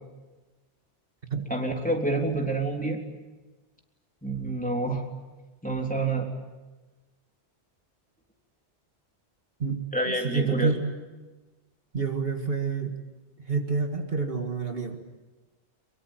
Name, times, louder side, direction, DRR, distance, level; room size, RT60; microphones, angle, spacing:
voice 1, 1.5-3.0 4.2-5.0 5.6-6.3 9.9-10.7, right 2 dB, 5° left, 1 dB, 3.4 m, -28 dB
voice 2, 9.6-10.9 11.9-13.0 13.5-15.0, right 5 dB, 55° right, 4 dB, 2.2 m, -28 dB
23.5 x 23.5 x 9.0 m, 1.2 s
omnidirectional pair, 1.2 m